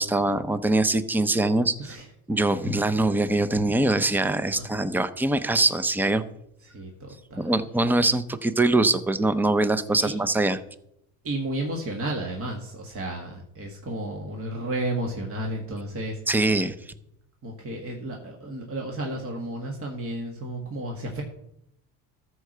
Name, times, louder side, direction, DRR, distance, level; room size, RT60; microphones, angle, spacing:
voice 1, 0.0-2.0 2.3-6.2 7.3-10.6 16.3-16.8, right 2 dB, 5° right, 13 dB, 0.6 m, -23 dB
voice 2, 6.6-7.5 10.0-10.1 11.2-16.2 17.4-21.2, right 1 dB, 35° right, 1 dB, 1.9 m, -32 dB
13.5 x 4.7 x 6.6 m, 0.76 s
cardioid pair, 105°, 37 cm